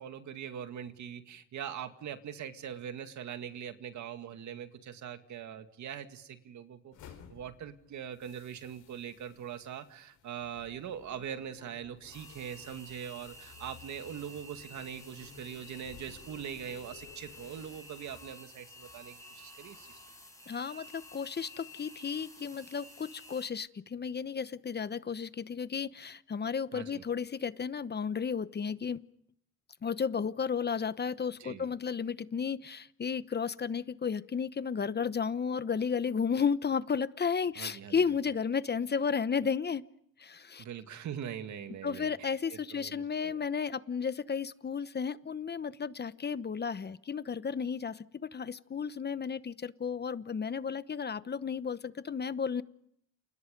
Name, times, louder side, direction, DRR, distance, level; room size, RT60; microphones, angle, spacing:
voice 1, 0.0-6.9 7.3-20.0 26.7-27.0 31.4-31.7 37.6-38.0 40.6-43.4, right 9 dB, 70° right, 8 dB, 2.2 m, -42 dB
sound 1, 6.9-17.8, left 8 dB, 85° left, 4.8 m, -56 dB
sound 2, 12.1-23.5, left 1 dB, 10° left, 7.0 m, -51 dB
voice 2, 20.5-29.0 29.8-39.8 40.2-40.6 41.8-52.6, left 6 dB, 35° left, 15 dB, 1.0 m, -33 dB
29.0 x 29.0 x 5.3 m, 0.71 s
cardioid pair, 90°, 30 cm